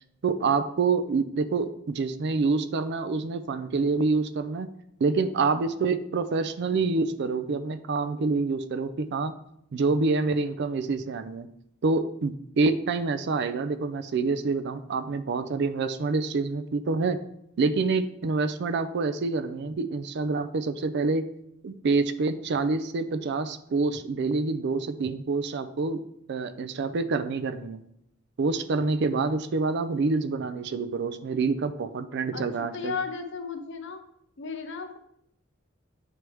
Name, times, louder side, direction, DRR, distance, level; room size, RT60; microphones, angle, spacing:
voice 1, 0.2-4.7 5.0-9.3 9.7-11.5 11.8-17.2 17.6-21.3 21.6-26.0 26.3-27.8 28.4-32.9, right 4 dB, 60° right, 12 dB, 0.4 m, -27 dB
voice 2, 32.3-34.0 34.4-35.0, left 5 dB, 60° left, 7 dB, 0.7 m, -35 dB
9.5 x 3.3 x 3.1 m, 0.74 s
head